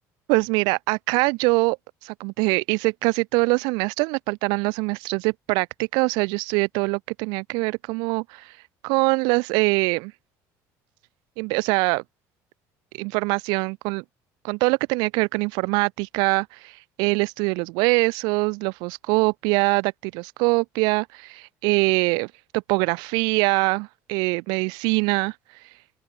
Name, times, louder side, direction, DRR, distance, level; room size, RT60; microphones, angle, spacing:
voice 1, 0.3-1.8 2.0-8.5 8.8-10.1 11.4-12.0 13.0-14.0 14.4-25.3, right 29 dB, 85° right, 1.6 m, -23 dB
open air
cardioid pair, 120°, 7 cm